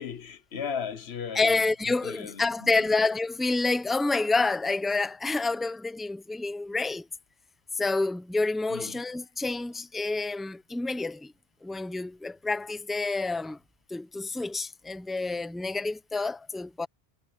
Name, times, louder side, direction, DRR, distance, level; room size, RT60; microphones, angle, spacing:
voice 1, 0.0-2.8 8.7-9.0, left 7 dB, 70° left, 1.2 m, -37 dB
voice 2, 1.3-7.1 7.7-11.3 11.6-13.6 13.9-16.9, left 3 dB, ahead, 0.6 m, -28 dB
omnidirectional pair, 1.1 m